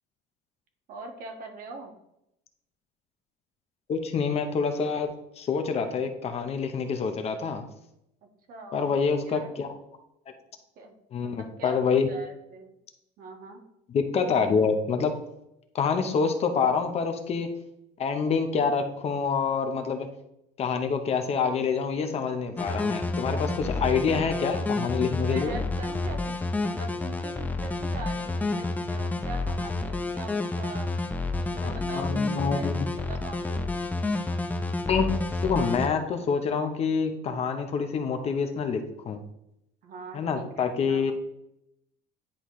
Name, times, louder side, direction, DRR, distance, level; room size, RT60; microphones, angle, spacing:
voice 1, 0.9-1.9 8.2-9.5 10.8-12.7 13.2-13.6 23.5-24.3 25.2-30.9 31.4-32.8 33.1-33.7 39.8-41.1, right 3 dB, 50° right, 3 dB, 1.5 m, -42 dB
voice 2, 3.9-5.1 5.4-7.6 8.7-9.7 11.1-12.1 13.9-15.1 15.7-17.5 18.0-20.1 20.6-25.6 31.6-32.8 34.9-35.1 35.4-39.2 40.1-41.1, left 5 dB, 35° left, 6 dB, 0.8 m, -27 dB
sound 1, 22.6-35.9, left 2 dB, 10° left, 0.6 m, -29 dB
10.0 x 4.2 x 3.1 m, 0.81 s
cardioid pair, 145°, 18 cm